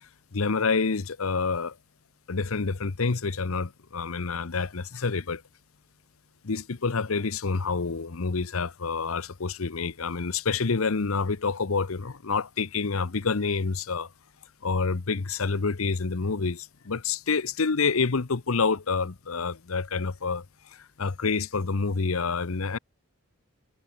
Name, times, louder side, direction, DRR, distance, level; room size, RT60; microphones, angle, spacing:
voice 1, 0.3-1.7 2.3-5.4 6.4-14.1 14.6-20.4 21.0-22.8, left 4 dB, 70° left, 0.9 m, -28 dB
head